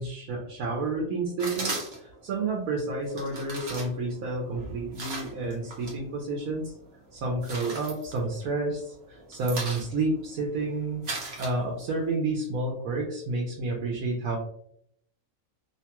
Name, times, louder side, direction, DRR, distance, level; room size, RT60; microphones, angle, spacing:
voice 1, 0.0-6.7 7.1-11.0 11.4-14.4, right 2 dB, 90° right, -2 dB, 1.1 m, -30 dB
sound 1, 1.4-2.2 3.1-6.0 6.3-6.9 7.2-8.7 9.0-12.1, right 2 dB, 55° right, 1.0 m, -37 dB
2.9 x 2.2 x 2.8 m, 0.69 s
omnidirectional pair, 1.4 m